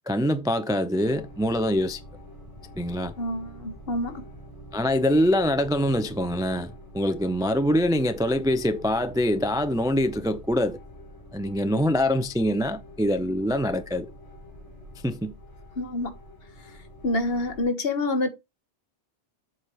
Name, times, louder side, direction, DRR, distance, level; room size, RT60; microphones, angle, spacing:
voice 1, 0.1-2.0 2.8-3.1 4.7-10.8 11.3-14.1 15.0-15.3, equal, 5° right, 0.3 m, -24 dB
sound 1, 1.0-17.6, equal, 20° left, 4.1 m, -46 dB
voice 2, 3.2-4.2 15.8-16.1 17.0-18.3, left 2 dB, 60° left, 1.4 m, -27 dB
7.9 x 4.9 x 4.4 m
omnidirectional pair, 1.2 m